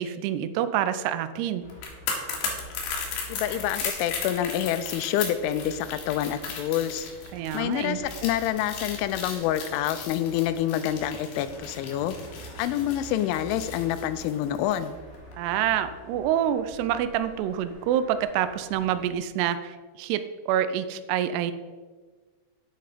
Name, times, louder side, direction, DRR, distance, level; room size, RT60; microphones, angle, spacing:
voice 1, 0.0-1.7 7.3-8.0 15.4-21.5, right 10 dB, 85° right, 11 dB, 2.4 m, -27 dB
sound 1, 1.6-19.1, equal, 25° right, 1.8 m, -46 dB
sound 2, 1.7-14.9 15.1-15.3, left 5 dB, 70° left, 3.6 m, -36 dB
voice 2, 3.3-7.1 7.5-12.2 12.6-15.0, left 11 dB, 85° left, 12 dB, 3.0 m, -27 dB
9.6 x 7.7 x 5.1 m, 1.4 s
omnidirectional pair, 5.4 m